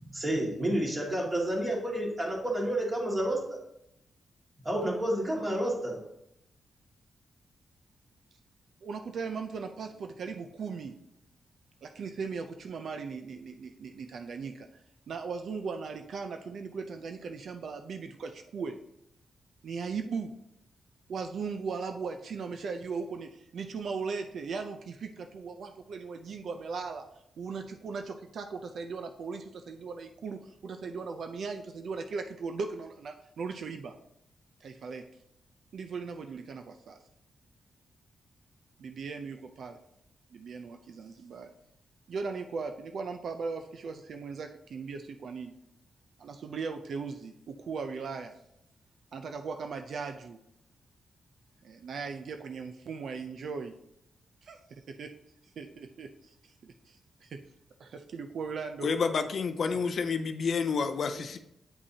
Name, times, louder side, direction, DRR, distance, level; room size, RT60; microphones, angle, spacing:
voice 1, 0.0-3.6 4.6-6.0, right 1 dB, 30° right, -3 dB, 2.1 m, -30 dB
voice 2, 8.8-11.0 11.8-14.7 15.1-18.8 19.6-20.3 21.1-27.1 27.4-33.9 34.6-35.0 35.7-37.0 38.8-39.8 40.3-41.5 42.1-45.5 46.2-48.4 49.1-50.4 51.6-53.7 54.4-55.1 55.6-57.4 57.8-59.0 59.7-59.8, right 5 dB, 65° right, 6 dB, 0.5 m, -38 dB
voice 3, 58.8-61.4, left 5 dB, 60° left, 7 dB, 0.5 m, -29 dB
8.5 x 5.3 x 2.8 m, 0.81 s
wide cardioid pair, 120°, 0 cm